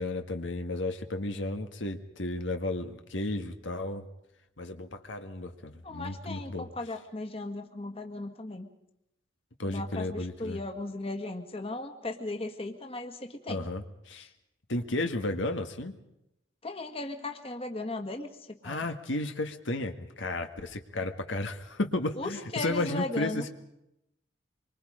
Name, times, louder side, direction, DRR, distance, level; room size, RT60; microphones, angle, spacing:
voice 1, 0.0-4.0 4.6-6.7 9.6-10.6 13.5-14.3 14.7-16.0 18.6-23.5, left 2 dB, 85° left, 6 dB, 1.7 m, -33 dB
voice 2, 5.8-8.7 9.7-13.6 14.2-14.3 16.6-18.8 22.2-23.4, left 2 dB, 30° left, 6 dB, 1.7 m, -37 dB
26.0 x 24.5 x 5.1 m, 0.84 s
head